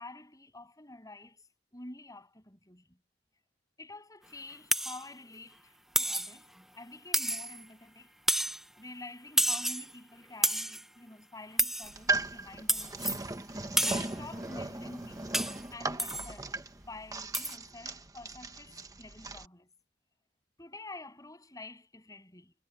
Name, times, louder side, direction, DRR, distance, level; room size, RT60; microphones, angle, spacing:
voice 1, 0.0-3.0 3.8-8.2 8.8-16.6 16.9-19.7 20.6-22.5, left 2 dB, 20° left, 7.5 m, -49 dB
sound 1, 4.7-5.0 5.9-6.4 7.1-7.6 8.3-8.6 9.4-9.9 10.4-10.8 11.6-11.9 12.7-13.2 13.8-14.2 15.3-15.6 16.0-16.3 17.3-17.6, right 1 dB, ahead, 0.6 m, -30 dB
sound 2, 11.8-19.5, right 2 dB, 20° right, 1.2 m, -37 dB
head